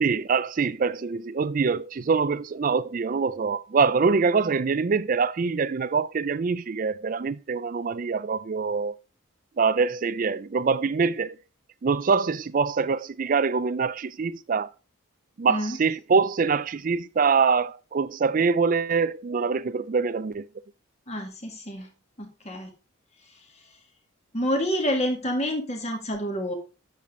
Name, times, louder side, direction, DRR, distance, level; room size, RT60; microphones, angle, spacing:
voice 1, 0.0-8.9 9.6-11.4 11.8-14.7 15.4-20.5, right 5 dB, 40° right, 0.4 m, -24 dB
voice 2, 15.5-15.8 21.1-21.9 22.2-22.7 24.3-26.5, equal, 30° left, 2.0 m, -28 dB
8.4 x 6.8 x 3.7 m
head